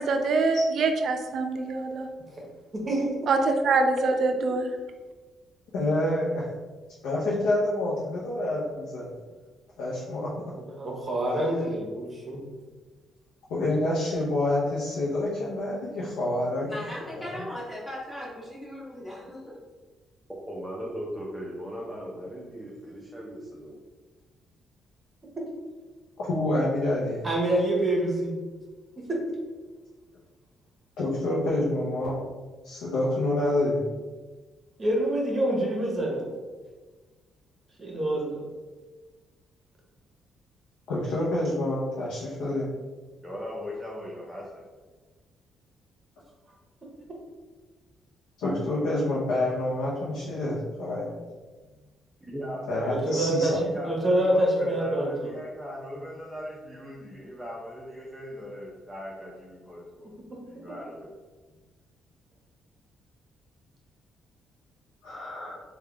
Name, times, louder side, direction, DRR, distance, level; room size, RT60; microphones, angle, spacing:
voice 1, 0.0-2.1 3.3-4.7, right 3 dB, 60° right, 6 dB, 0.4 m, -24 dB
voice 2, 2.7-3.1 10.6-12.5 27.2-28.4 34.8-36.2 37.8-38.4 52.9-55.3, right 1 dB, 30° right, -2 dB, 1.0 m, -26 dB
voice 3, 5.7-6.4 7.0-9.1 9.8-10.3 13.5-16.7 17.2-17.5 26.2-27.3 31.0-32.2 32.6-33.8 40.9-42.7 48.4-51.1 52.7-53.6 65.0-65.6, left 1 dB, 90° left, -5 dB, 0.6 m, -27 dB
voice 4, 16.7-19.6, left 1 dB, 10° left, -7 dB, 1.4 m, -38 dB
voice 5, 20.3-23.8 43.2-44.6 52.2-53.2 53.6-60.1 60.5-61.1, equal, 5° right, -5 dB, 0.7 m, -39 dB
3.5 x 2.3 x 3.4 m, 1.3 s
cardioid pair, 90°, 0 cm